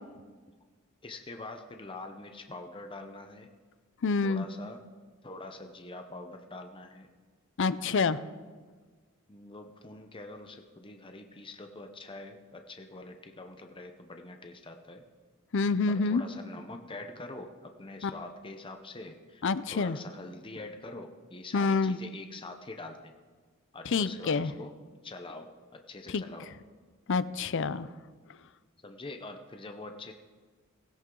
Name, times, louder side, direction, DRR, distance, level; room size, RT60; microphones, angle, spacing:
voice 1, 1.0-3.5 4.2-4.8 5.2-7.1 9.3-15.0 15.9-19.4 19.7-23.1 23.7-24.7 25.0-26.5 28.8-30.1, left 2 dB, 25° left, 5 dB, 0.8 m, -44 dB
voice 2, 4.0-4.5 7.6-8.2 15.5-16.2 18.0-18.1 19.4-20.0 21.5-22.0 23.9-24.5 26.1-26.2 27.1-27.9, left 4 dB, 60° left, 15 dB, 0.5 m, -27 dB
17.0 x 16.0 x 3.8 m, 1.4 s
head